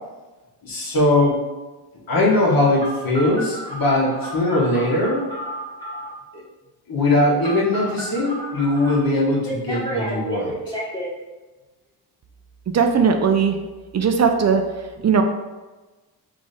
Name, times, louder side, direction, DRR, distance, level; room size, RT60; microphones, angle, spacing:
voice 1, 0.6-1.4 2.1-5.2 6.3-6.4 6.9-10.5, left 2 dB, 60° left, -4 dB, 1.5 m, -20 dB
Telephone, 2.8-6.2 7.4-8.9 9.5-11.1, equal, 10° left, 1.2 m, -32 dB
voice 2, 12.7-13.6 13.9-14.6 15.0-15.2, right 6 dB, 45° right, 5 dB, 0.4 m, -17 dB
3.5 x 3.2 x 4.1 m, 1.2 s
cardioid pair, 100°, 39 cm